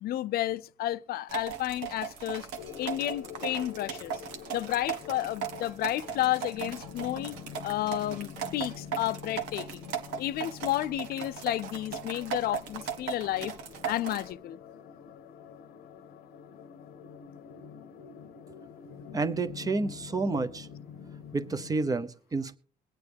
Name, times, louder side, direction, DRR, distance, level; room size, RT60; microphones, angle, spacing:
voice 1, 0.0-2.5 2.8-4.1 4.5-7.4 7.6-9.9 10.2-13.5 13.9-14.6, left 14 dB, 65° left, 0.5 m, -31 dB
sound 1, 1.3-14.3, right 7 dB, 85° right, 1.5 m, -38 dB
sound 2, 2.6-21.9, left 7 dB, 80° left, 0.9 m, -46 dB
voice 2, 19.1-20.7 21.3-22.6, right 3 dB, 20° right, 0.8 m, -30 dB
22.5 x 9.0 x 3.4 m
cardioid pair, 110°, 17 cm